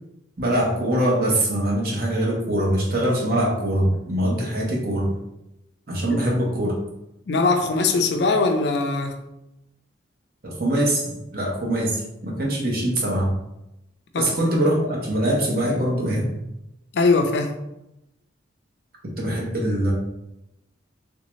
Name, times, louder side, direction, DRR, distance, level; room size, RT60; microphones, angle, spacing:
voice 1, 0.4-5.1 5.9-6.7 10.4-13.3 14.2-16.3 19.2-19.9, right 1 dB, 50° right, -2 dB, 0.9 m, -23 dB
voice 2, 7.3-9.2 14.1-14.3 16.9-17.6, left 3 dB, 60° left, 6 dB, 0.4 m, -21 dB
3.4 x 2.7 x 3.0 m, 0.88 s
head